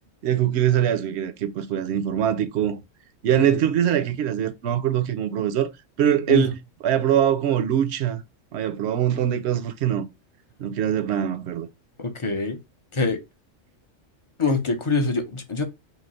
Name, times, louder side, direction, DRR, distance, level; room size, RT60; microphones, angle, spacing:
voice 1, 0.2-2.8 3.2-5.7 6.0-8.2 8.5-10.0 10.6-11.7, right 10 dB, 65° right, 0.8 m, -23 dB
voice 2, 12.0-12.6 12.9-13.2 14.4-15.6, left 4 dB, 40° left, 0.5 m, -24 dB
3.2 x 2.8 x 4.0 m
omnidirectional pair, 1.3 m